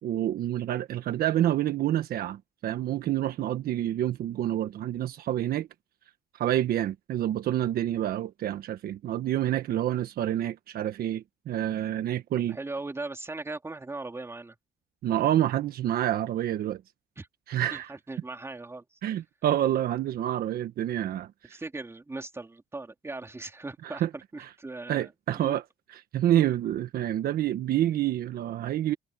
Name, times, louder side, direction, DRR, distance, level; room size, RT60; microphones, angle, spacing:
voice 1, 0.0-5.7 6.3-12.6 15.0-16.8 17.5-17.9 19.0-21.6 23.8-24.1 24.4-24.5 24.9-25.6 25.9-28.9, right 12 dB, 65° right, 1.4 m, -28 dB
voice 2, 12.5-14.5 17.2-17.3 17.7-18.8 21.5-24.0 24.3-25.6, right 2 dB, 15° right, 3.5 m, -39 dB
cardioid pair, 110°, 17 cm